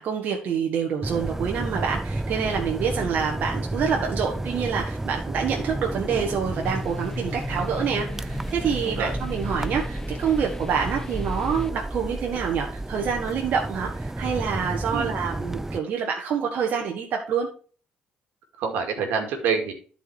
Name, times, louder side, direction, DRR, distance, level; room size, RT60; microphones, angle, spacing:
voice 1, 0.0-17.5, right 7 dB, 65° right, 1 dB, 1.6 m, -27 dB
sound 1, 1.0-15.8, right 2 dB, 15° right, 0.5 m, -32 dB
sound 2, 6.6-11.7, left 1 dB, 20° left, 1.0 m, -35 dB
voice 2, 8.8-9.1 14.9-15.1 18.6-19.7, right 6 dB, 80° right, 3 dB, 2.2 m, -26 dB
11.0 x 5.1 x 4.7 m, 0.40 s
supercardioid pair, 70°, 3 cm